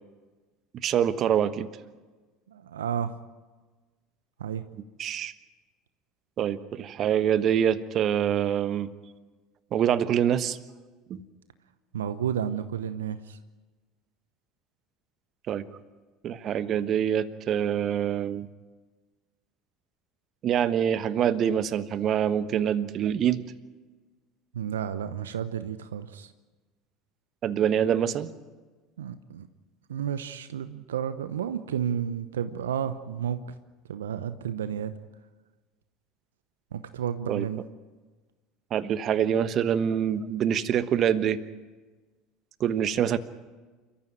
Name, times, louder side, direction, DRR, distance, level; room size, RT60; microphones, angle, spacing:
voice 1, 0.8-1.7 5.0-5.3 6.4-8.9 9.7-10.6 11.1-11.2 15.5-15.6 16.2-18.5 20.4-23.4 27.4-28.3 37.3-37.5 38.7-41.4 42.6-43.2, right 9 dB, 45° right, 13 dB, 1.3 m, -25 dB
voice 2, 2.7-3.2 4.4-4.6 11.9-13.4 24.6-26.3 29.0-29.5 29.9-33.4 33.9-34.9 36.7-37.6, right 9 dB, 80° right, 11 dB, 0.9 m, -31 dB
28.5 x 14.5 x 9.3 m, 1.3 s
hypercardioid pair, 70°, 0 cm